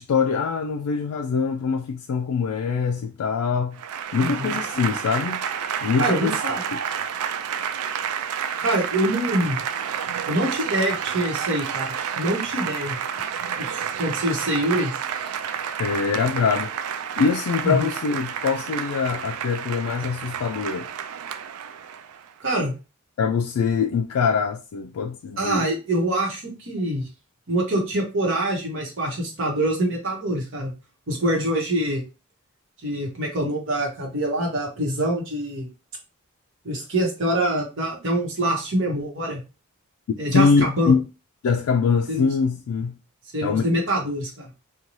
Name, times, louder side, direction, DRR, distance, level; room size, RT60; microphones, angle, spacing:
voice 1, 0.0-3.8 4.1-5.4 5.8-6.3 6.7-6.8 15.8-16.7 17.2-20.9 23.2-25.6 40.3-41.0 41.4-43.0 43.4-43.6, left 5 dB, 75° left, 0.3 m, -23 dB
Applause / Crowd, 3.7-22.3, right 8 dB, 80° right, 0.3 m, -30 dB
voice 2, 6.0-6.6 8.6-9.6 10.3-13.0 13.6-13.7 14.0-14.9 17.6-17.9 22.4-22.7 25.4-27.1 27.5-30.7 31.1-32.0 32.8-35.7 36.6-39.4 40.2-40.9 42.1-42.3 43.3-44.5, right 1 dB, 55° right, 1.0 m, -25 dB
2.6 x 2.2 x 3.0 m
head